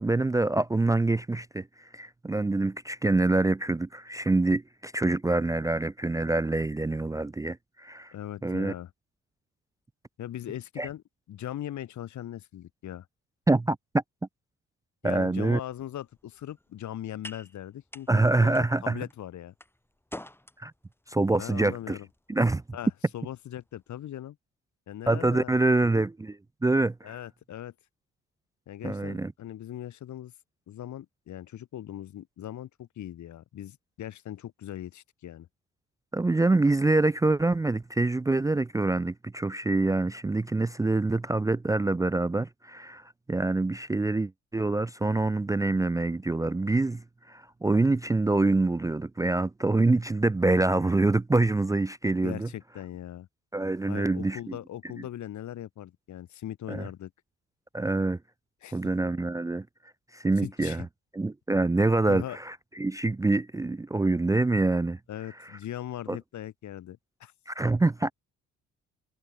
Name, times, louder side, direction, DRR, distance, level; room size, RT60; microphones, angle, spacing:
voice 1, 0.0-8.1 8.4-8.7 10.8-10.9 13.5-14.0 15.0-15.6 18.1-19.0 20.6-20.7 21.1-22.0 22.3-22.6 25.1-27.2 28.8-29.3 36.1-52.5 53.5-54.6 56.7-56.9 57.7-58.2 58.7-59.7 60.1-60.9 61.1-65.0 66.1-66.2 67.5-68.1, right 2 dB, 10° right, 0.5 m, -26 dB
voice 2, 8.1-8.9 10.2-11.0 11.3-13.1 15.0-19.5 21.4-22.1 22.7-24.4 24.9-25.6 27.0-27.7 28.7-30.3 30.7-35.5 52.2-53.3 53.9-57.1 58.6-58.8 60.4-60.9 62.1-62.4 65.1-67.3, left 11 dB, 70° left, 3.0 m, -39 dB
sound 1, 15.7-24.1, left 1 dB, 5° left, 7.0 m, -50 dB
cardioid pair, 90°, 30 cm